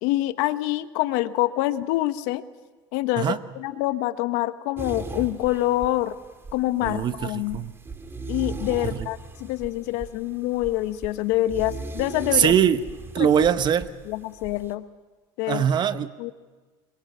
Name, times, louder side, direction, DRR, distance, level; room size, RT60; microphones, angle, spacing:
voice 1, 0.0-2.4 2.9-6.2 6.5-7.6 8.3-12.6 13.2-13.3 14.1-14.8 15.4-15.6 16.2-16.3, left 16 dB, 75° left, 11 dB, 1.2 m, -26 dB
sound 1, 4.8-14.7, right 3 dB, 20° right, 2.2 m, -38 dB
voice 2, 6.8-7.7 9.0-9.1 12.3-12.8 13.1-13.9 15.5-16.3, right 8 dB, 35° right, 12 dB, 1.1 m, -22 dB
26.5 x 22.5 x 7.4 m, 1.3 s
supercardioid pair, 120°, 12 cm